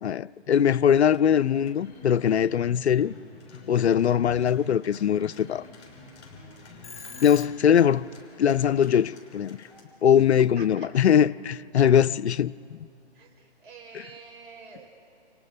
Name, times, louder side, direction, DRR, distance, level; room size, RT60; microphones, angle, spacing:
voice 1, 0.0-3.1 3.7-5.7 7.2-8.1 8.4-9.6 10.0-12.8 13.9-14.0, left 9 dB, 75° left, 0.6 m, -21 dB
sound 1, 0.8-9.8, left 3 dB, 25° left, 5.8 m, -49 dB
Telephone, 6.8-7.9, left 5 dB, 60° left, 2.4 m, -43 dB
voice 2, 10.3-10.6 13.1-14.9, right 5 dB, 50° right, 5.9 m, -47 dB
30.0 x 28.5 x 5.5 m
hypercardioid pair, 155°, 33 cm